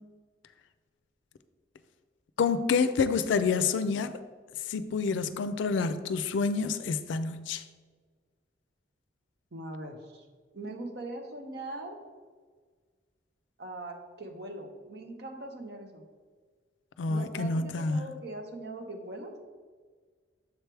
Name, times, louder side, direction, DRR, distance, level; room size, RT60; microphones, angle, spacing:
voice 1, 2.4-4.1 4.7-7.6 17.0-18.0, left 5 dB, 80° left, 12 dB, 0.4 m, -28 dB
voice 2, 9.5-10.3 10.5-12.0 13.6-16.0 17.1-19.3, right 2 dB, 60° right, 4 dB, 0.8 m, -41 dB
7.0 x 3.4 x 4.5 m, 1.5 s
head